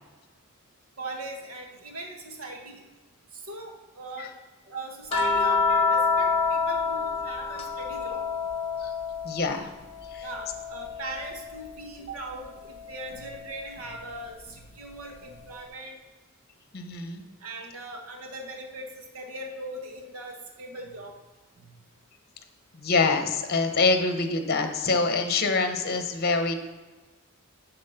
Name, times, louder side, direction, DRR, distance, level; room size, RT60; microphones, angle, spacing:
voice 1, 1.0-2.8 3.5-4.3 4.7-8.2 10.2-16.0 17.4-21.2, right 2 dB, 80° right, 2 dB, 1.5 m, -40 dB
sound 1, 5.1-9.6 9.9-11.6 13.1-13.3, left 4 dB, 25° left, 1.3 m, -27 dB
voice 2, 9.2-9.7 10.1-10.2 16.7-17.2 22.8-26.5, left 3 dB, 45° left, 6 dB, 0.9 m, -25 dB
10.5 x 4.2 x 5.7 m, 1.2 s
head